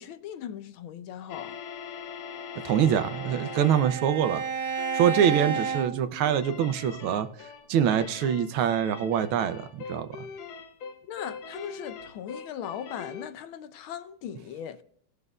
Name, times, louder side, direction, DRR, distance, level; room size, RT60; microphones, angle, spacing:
voice 1, 0.0-1.6 11.1-14.8, left 9 dB, 80° left, 1.5 m, -38 dB
sound 1, 1.3-4.0 4.8-5.1 5.5-5.9 6.2-13.3, left 6 dB, 60° left, 1.1 m, -42 dB
Bowed string instrument, 2.3-6.8, right 6 dB, 60° right, 0.6 m, -33 dB
voice 2, 2.6-4.4 4.9-7.3 7.7-10.3, right 9 dB, 85° right, 1.6 m, -24 dB
18.5 x 6.6 x 2.4 m
omnidirectional pair, 2.2 m